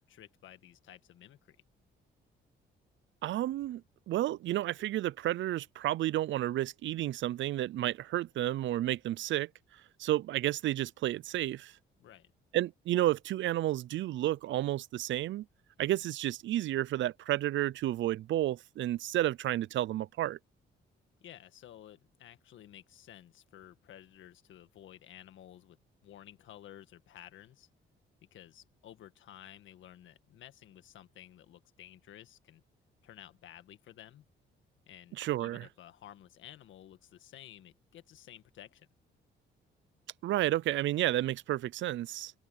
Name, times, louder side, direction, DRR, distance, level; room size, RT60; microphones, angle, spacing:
voice 1, 0.0-1.6 12.0-12.3 21.2-25.8 26.0-27.7 28.3-32.6 33.0-34.2 34.9-38.9, left 11 dB, 75° left, 1.7 m, -53 dB
voice 2, 3.2-9.5 10.0-11.7 12.5-15.5 15.8-20.4 35.2-35.7 40.2-42.3, right 14 dB, 70° right, 0.5 m, -31 dB
open air
cardioid pair, 90°, 20 cm